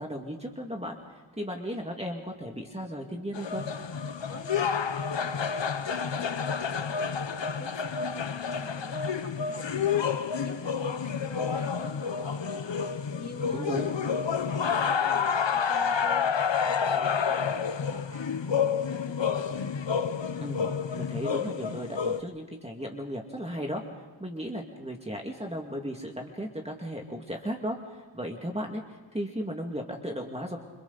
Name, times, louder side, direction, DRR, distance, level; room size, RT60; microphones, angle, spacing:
voice 1, 0.0-3.7 13.5-13.9 20.4-20.7 20.9-23.8 24.2-30.6, equal, 10° right, 1 dB, 2.2 m, -35 dB
sound 1, 3.3-22.2, left 6 dB, 60° left, 1.0 m, -29 dB
voice 2, 4.3-7.3 7.6-10.0 10.4-16.3 16.6-19.7, left 2 dB, 30° left, 0 dB, 3.4 m, -47 dB
28.5 x 26.0 x 4.1 m, 1.4 s
wide cardioid pair, 85°, 49 cm